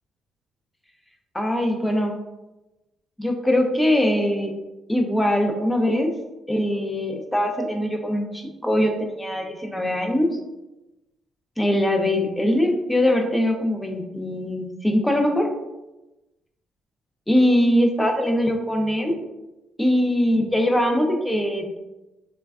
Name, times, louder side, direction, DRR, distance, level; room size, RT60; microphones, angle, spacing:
voice 1, 1.3-2.1 3.2-4.5 4.9-6.2 6.5-10.4 11.6-15.5 17.3-19.2 19.8-21.8, left 1 dB, 10° left, 3 dB, 0.4 m, -22 dB
3.1 x 2.2 x 2.3 m, 1.0 s
cardioid pair, 90°, 0 cm